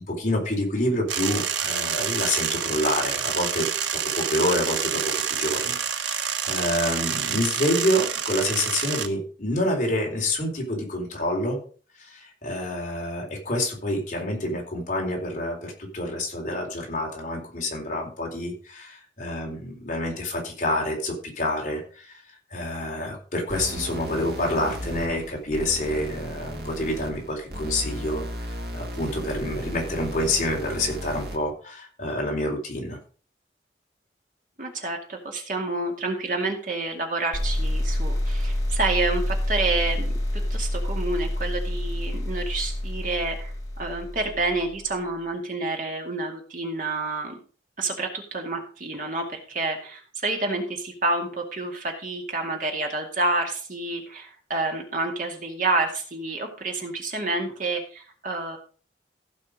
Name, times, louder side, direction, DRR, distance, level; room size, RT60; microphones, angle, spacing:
voice 1, 0.0-11.6 12.0-22.2 22.5-33.0, left 1 dB, 45° left, -1 dB, 4.1 m, -28 dB
sound 1, 1.1-9.1, right 8 dB, 90° right, 1.1 m, -28 dB
sound 2, 23.5-31.5, equal, 60° right, 1.8 m, -35 dB
voice 2, 34.6-47.4 47.8-58.6, right 2 dB, 45° right, 2 dB, 2.3 m, -29 dB
sound 3, 37.3-44.9, left 1 dB, 20° left, 2.4 m, -27 dB
15.5 x 5.7 x 5.2 m, 0.40 s
head